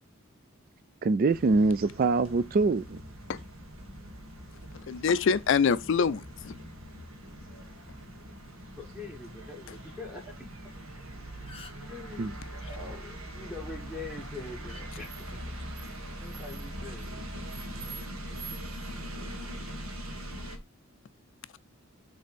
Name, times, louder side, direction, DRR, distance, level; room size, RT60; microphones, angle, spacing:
voice 1, 1.0-3.0 12.2-12.3, right 3 dB, 40° right, 0.3 m, -24 dB
sound 1, 1.3-20.6, right 1 dB, 80° right, 1.8 m, -42 dB
voice 2, 4.7-6.6, left 6 dB, 60° left, 0.4 m, -25 dB
voice 3, 7.5-7.8 8.8-10.3 11.7-15.1 16.2-17.2, left 3 dB, 5° right, 1.3 m, -44 dB
sound 2, 11.0-11.1 11.3-12.0 13.6-13.8 14.7-14.9 15.9-16.1, left 3 dB, 25° left, 0.8 m, -49 dB
6.6 x 3.5 x 5.2 m
head